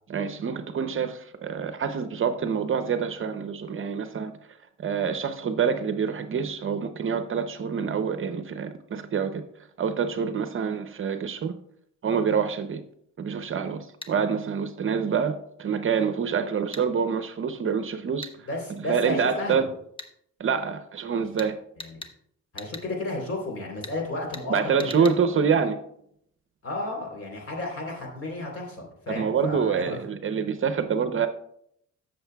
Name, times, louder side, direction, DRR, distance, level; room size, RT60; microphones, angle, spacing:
voice 1, 0.1-4.3 4.8-9.4 9.8-11.6 12.0-12.8 13.2-18.3 18.9-19.6 20.4-21.6 24.5-25.8 29.1-31.3, right 6 dB, 45° right, 9 dB, 0.7 m, -26 dB
sound 1, 14.0-14.1 16.7-16.9 18.2-18.4 20.0-20.1 21.4-21.5 21.8-22.1 22.6-22.9 23.8-24.0 24.3-24.5 24.8-25.2, left 1 dB, 15° left, 0.9 m, -40 dB
voice 2, 18.5-19.7 21.4-21.5 21.8-22.0 22.5-25.1 26.6-30.0, left 2 dB, 50° left, 1 dB, 3.5 m, -33 dB
14.0 x 6.6 x 2.3 m, 0.71 s
cardioid pair, 90°, 30 cm